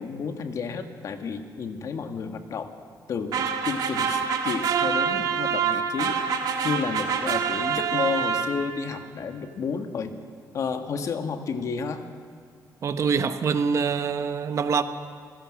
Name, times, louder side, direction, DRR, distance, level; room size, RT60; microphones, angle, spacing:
voice 1, 0.0-2.7 3.1-6.2 6.6-10.1 10.5-12.0, left 5 dB, 55° left, 1.8 m, -31 dB
sound 1, 3.3-8.8, right 7 dB, 75° right, 2.2 m, -26 dB
voice 2, 12.8-14.8, right 6 dB, 50° right, 1.2 m, -25 dB
27.0 x 16.0 x 6.5 m
cardioid pair, 130°, 7 cm